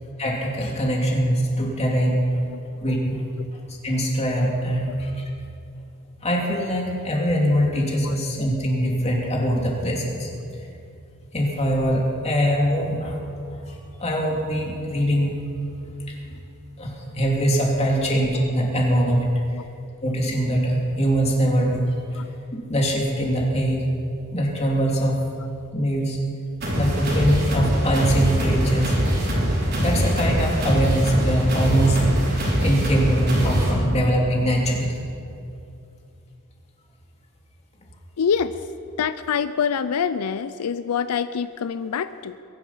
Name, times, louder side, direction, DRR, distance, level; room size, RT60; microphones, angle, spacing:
voice 1, 0.0-2.4 2.8-3.2 3.5-5.2 6.2-10.7 11.3-13.2 13.7-13.8 14.0-15.4 15.7-16.2 16.8-19.3 20.0-21.8 22.1-22.2 22.7-23.8 24.3-25.2 25.7-26.2 26.7-28.9 29.8-32.0 32.3-35.0, equal, 30° left, -1 dB, 2.7 m, -23 dB
sound 1, 26.6-33.7, equal, 45° right, 3.9 m, -22 dB
voice 2, 38.2-38.7 39.0-42.4, left 7 dB, 85° left, 12 dB, 0.5 m, -26 dB
22.5 x 11.0 x 5.6 m, 2.7 s
head